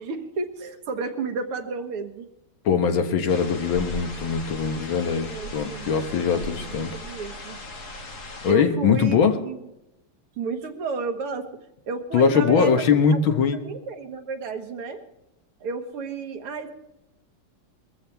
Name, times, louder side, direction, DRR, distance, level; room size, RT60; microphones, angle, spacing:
voice 1, 0.0-2.3 5.1-7.6 8.5-9.6 10.4-11.5 11.9-12.8 13.3-15.0 15.6-16.8, right 4 dB, 90° right, 6 dB, 2.3 m, -32 dB
voice 2, 2.7-6.9 8.4-9.4 12.1-13.6, left 6 dB, 70° left, 7 dB, 2.0 m, -21 dB
sound 1, 3.3-8.5, left 1 dB, 45° left, 2.4 m, -38 dB
22.0 x 14.5 x 3.4 m, 0.90 s
omnidirectional pair, 2.4 m